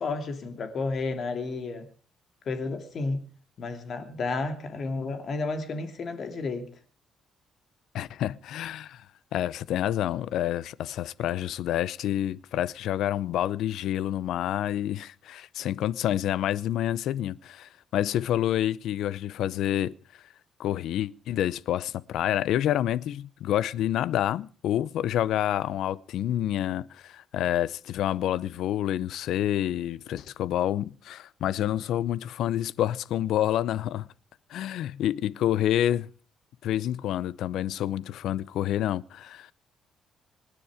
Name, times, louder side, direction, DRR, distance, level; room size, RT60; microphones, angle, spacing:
voice 1, 0.0-1.9 2.5-3.2 3.6-6.7, left 3 dB, 40° left, 2.8 m, -31 dB
voice 2, 7.9-9.0 9.3-19.9 20.6-34.1 34.5-36.1 36.6-39.5, left 12 dB, 75° left, 0.7 m, -28 dB
26.5 x 10.0 x 5.0 m
cardioid pair, 170°, 0 cm